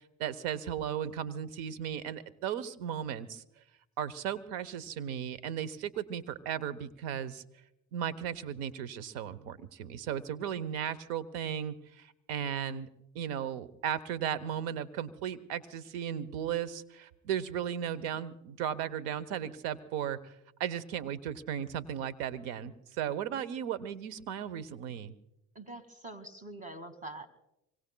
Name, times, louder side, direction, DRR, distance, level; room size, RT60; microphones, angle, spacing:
voice 1, 0.0-3.6 4.0-7.4 7.9-12.9 13.1-20.3 20.6-25.1, right 9 dB, 90° right, 17 dB, 0.9 m, -36 dB
voice 2, 25.5-27.3, right 2 dB, 20° right, 9 dB, 2.0 m, -44 dB
25.0 x 24.0 x 2.2 m, 0.88 s
supercardioid pair, 70°, 41 cm